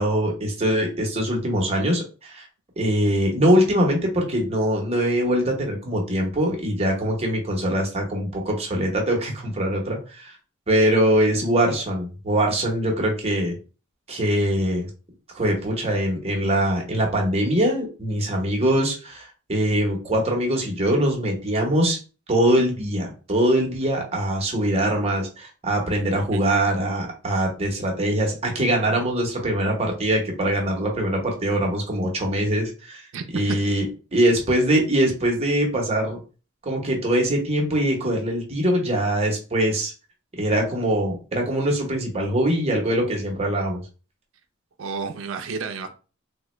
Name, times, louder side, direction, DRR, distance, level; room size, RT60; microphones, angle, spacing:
voice 1, 0.0-2.5 2.8-10.3 10.7-13.5 14.1-14.9 15.4-22.0 22.3-33.1 33.3-33.8 34.1-36.2 36.6-39.9 40.4-43.8, right 1 dB, 30° right, 0 dB, 0.9 m, -22 dB
voice 2, 33.1-33.6 44.8-45.9, right 4 dB, 70° right, 6 dB, 0.4 m, -31 dB
3.4 x 2.1 x 3.0 m, 0.35 s
head